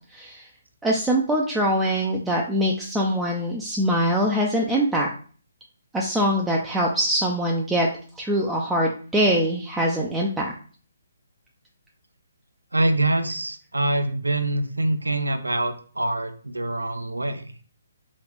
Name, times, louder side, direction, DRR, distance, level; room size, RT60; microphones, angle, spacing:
voice 1, 0.1-0.5 0.8-5.1 5.9-7.9 8.2-10.5, equal, 5° right, -2 dB, 0.4 m, -23 dB
voice 2, 12.7-17.5, right 2 dB, 75° right, 8 dB, 0.6 m, -25 dB
3.7 x 3.1 x 3.3 m, 0.42 s
figure-of-eight pair, 135°, 0 cm